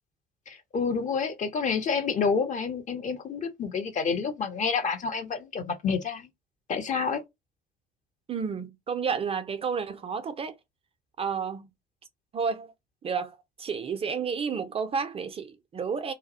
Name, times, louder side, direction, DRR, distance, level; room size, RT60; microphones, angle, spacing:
voice 1, 0.5-6.3 6.7-7.2, left 5 dB, 35° left, 0.7 m, -28 dB
voice 2, 8.3-10.6 11.2-11.7 12.3-12.7 13.0-16.1, right 6 dB, 30° right, 0.4 m, -31 dB
2.3 x 2.0 x 2.6 m
figure-of-eight pair, 55°, 21 cm